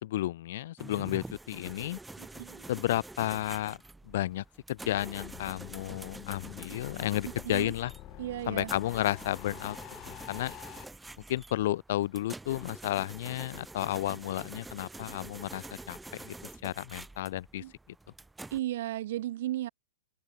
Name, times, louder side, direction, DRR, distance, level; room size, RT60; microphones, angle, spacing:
voice 1, 0.0-2.0 2.7-3.8 4.1-7.9 8.5-9.8 10.1-10.5 11.3-16.3 16.6-17.6, left 14 dB, 45° left, 0.7 m, -32 dB
sound 1, 0.8-18.6, right 2 dB, 5° right, 1.9 m, -47 dB
voice 2, 2.2-2.7 7.2-7.7 8.2-8.7 17.6-17.7 18.5-19.7, right 14 dB, 45° right, 0.5 m, -35 dB
sound 2, 4.7-10.8, left 18 dB, 20° left, 1.2 m, -47 dB
hypercardioid pair, 180°, 0 cm